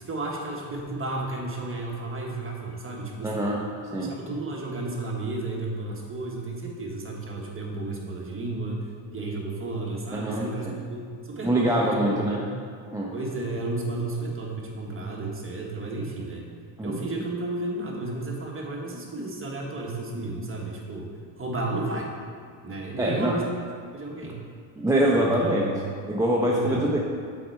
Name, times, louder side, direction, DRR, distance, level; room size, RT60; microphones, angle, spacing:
voice 1, 0.0-3.5 3.9-12.5 13.1-16.4 16.8-21.1 21.4-22.1 22.6-23.5 23.9-24.4 25.1-25.8 26.5-26.8, right 2 dB, 25° right, -2 dB, 1.3 m, -32 dB
voice 2, 3.2-3.6 3.9-4.2 10.1-10.7 11.4-12.4 12.9-13.1 16.8-16.9 23.0-23.4 24.2-24.3 24.8-25.7 26.1-27.0, right 1 dB, 5° right, -4 dB, 0.6 m, -24 dB
6.3 x 4.5 x 4.5 m, 2.1 s
cardioid pair, 90°, 47 cm